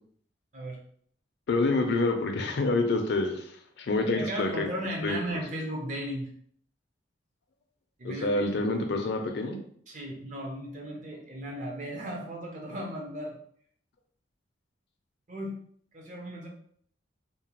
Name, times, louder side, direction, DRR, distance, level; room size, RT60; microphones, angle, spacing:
voice 1, 1.5-3.5 3.8-4.7 5.0-5.2 8.0-9.6, left 2 dB, 60° left, 5 dB, 0.4 m, -27 dB
voice 2, 4.2-6.3 8.0-8.6 9.9-13.4 15.3-15.5 15.9-16.5, right 1 dB, 40° right, 0 dB, 0.6 m, -36 dB
2.8 x 2.1 x 2.9 m, 0.62 s
head